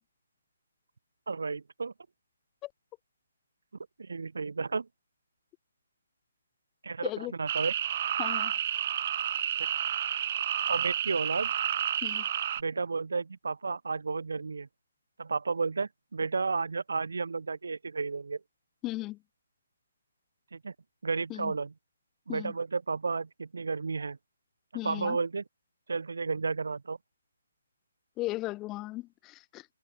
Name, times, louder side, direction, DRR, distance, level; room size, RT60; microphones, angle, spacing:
voice 1, 1.3-1.9 4.0-4.9 6.8-7.1 7.4-7.7 10.7-11.5 12.6-14.7 15.2-18.4 20.5-20.7 21.0-21.7 22.3-24.2 24.8-25.4 25.9-27.0, right 4 dB, 80° right, 6.6 m, -32 dB
sound 1, 7.5-12.6, right 10 dB, 45° right, 7.5 m, -30 dB
voice 2, 8.2-8.5 12.0-12.3 18.8-19.2 21.3-21.5 22.3-22.5 24.7-25.2 28.2-29.7, left 18 dB, 20° left, 5.6 m, -36 dB
hypercardioid pair, 155°, 0 cm